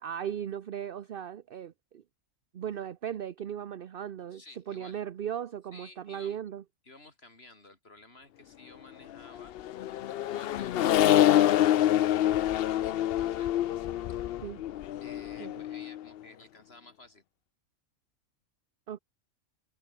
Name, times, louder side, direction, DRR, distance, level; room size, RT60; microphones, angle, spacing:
voice 1, 0.0-2.0 2.5-4.4 4.7-6.6 14.4-14.6 15.4-15.5 18.9-19.0, right 9 dB, 50° right, 0.7 m, -37 dB
voice 2, 4.3-5.1 5.7-6.4 6.8-9.5 10.1-12.4 12.7-13.7 14.1-14.3 15.0-17.2, left 2 dB, 45° left, 4.3 m, -54 dB
Accelerating revving vroom, 9.3-16.0, left 12 dB, 65° left, 0.6 m, -26 dB
omnidirectional pair, 1.4 m